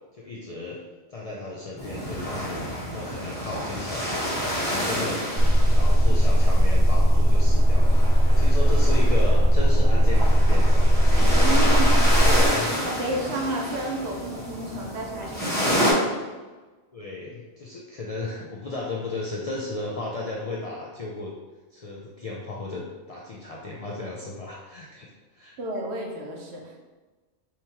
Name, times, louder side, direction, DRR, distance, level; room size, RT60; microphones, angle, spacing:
voice 1, 0.1-0.8 1.1-5.2 5.8-10.9 11.2-11.9 12.2-12.8 16.9-21.3 21.7-25.5, left 2 dB, 60° left, -4 dB, 0.4 m, -35 dB
sound 1, 1.8-15.9, equal, 10° left, 1.1 m, -29 dB
sound 2, 5.3-12.5, equal, 45° right, 0.6 m, -18 dB
voice 2, 11.3-12.0 12.8-16.3 25.6-26.9, right 2 dB, 75° right, 0 dB, 1.0 m, -31 dB
3.5 x 2.9 x 2.8 m, 1.3 s
omnidirectional pair, 1.1 m